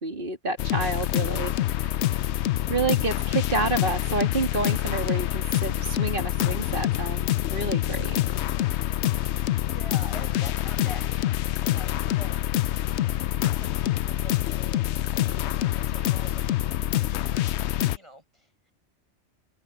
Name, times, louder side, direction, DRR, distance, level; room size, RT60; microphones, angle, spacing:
voice 1, 0.0-1.5 2.7-8.2, right 3 dB, 45° right, 2.9 m, -29 dB
sound 1, 0.6-18.0, left 13 dB, 70° left, 0.8 m, -26 dB
voice 2, 9.1-12.4 13.0-13.2 13.6-17.2 17.6-18.7, equal, 25° right, 6.9 m, -47 dB
omnidirectional pair, 1.2 m